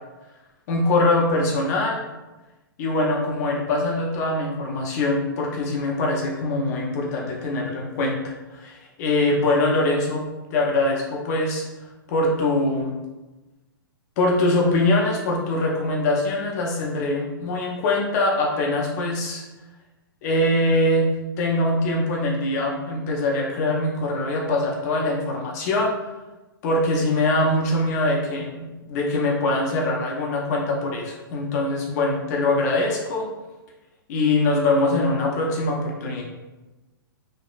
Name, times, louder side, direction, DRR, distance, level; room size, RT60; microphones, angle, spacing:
voice 1, 0.7-2.0 2.8-8.2 8.5-11.6 12.1-13.0 14.2-19.4 20.2-21.1 21.4-25.9 26.6-33.3 34.1-36.2, left 2 dB, 45° left, -1 dB, 0.5 m, -23 dB
3.0 x 2.1 x 2.4 m, 1.1 s
hypercardioid pair, 125°, 12 cm